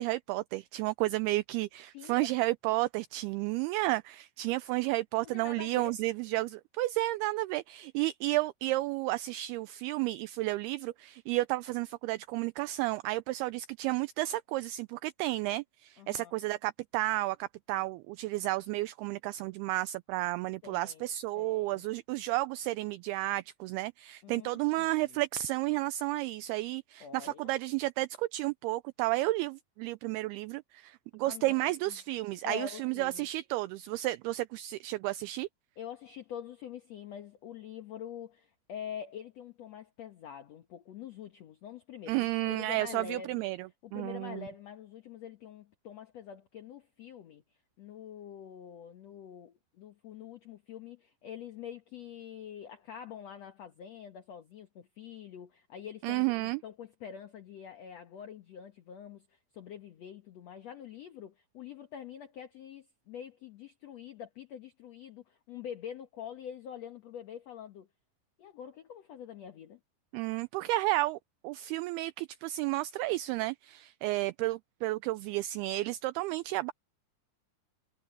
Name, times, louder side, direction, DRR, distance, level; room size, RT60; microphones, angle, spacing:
voice 1, 0.0-35.5 42.1-44.5 56.0-56.6 70.1-76.7, right 18 dB, 80° right, 2.4 m, -32 dB
voice 2, 1.9-2.3 5.2-5.9 16.0-16.4 20.6-21.0 21.3-21.9 24.2-25.2 27.0-27.5 31.2-32.0 32.4-33.3 35.8-43.4 43.8-67.9 68.4-69.8, left 9 dB, 65° left, 1.8 m, -45 dB
omnidirectional pair, 4.8 m